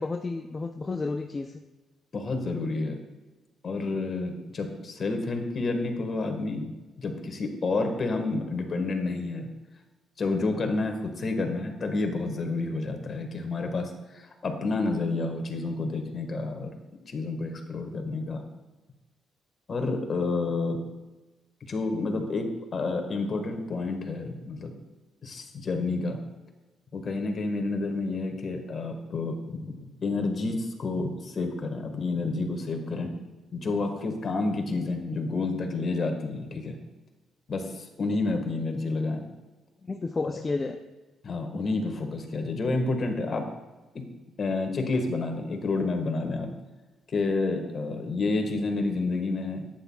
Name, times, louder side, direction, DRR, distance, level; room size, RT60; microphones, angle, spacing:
voice 1, 0.0-1.6 39.8-40.8, left 3 dB, 25° left, 4 dB, 0.5 m, -31 dB
voice 2, 2.1-3.0 3.6-6.6 7.0-9.5 10.2-16.7 17.1-18.4 19.7-20.8 21.7-24.7 25.2-26.2 26.9-33.1 33.5-36.8 37.5-37.6 38.0-39.2 41.2-43.4 44.4-46.5 47.1-49.6, left 3 dB, 45° left, 4 dB, 1.5 m, -29 dB
11.5 x 9.1 x 2.3 m, 1.2 s
cardioid pair, 90°, 0 cm